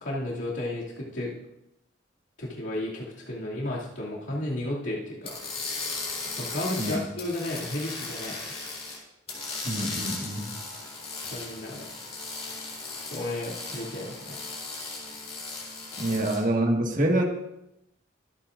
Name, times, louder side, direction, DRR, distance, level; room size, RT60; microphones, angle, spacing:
voice 1, 0.0-1.3 2.4-5.3 6.4-8.6 11.2-11.9 13.0-14.4, left 1 dB, 75° left, -6 dB, 2.5 m, -33 dB
sound 1, 5.2-9.0 9.3-16.4, left 3 dB, 30° left, 4.1 m, -37 dB
voice 2, 9.6-10.5 16.0-17.2, right 1 dB, 45° right, 1 dB, 1.7 m, -26 dB
24.5 x 8.7 x 2.6 m, 0.84 s
head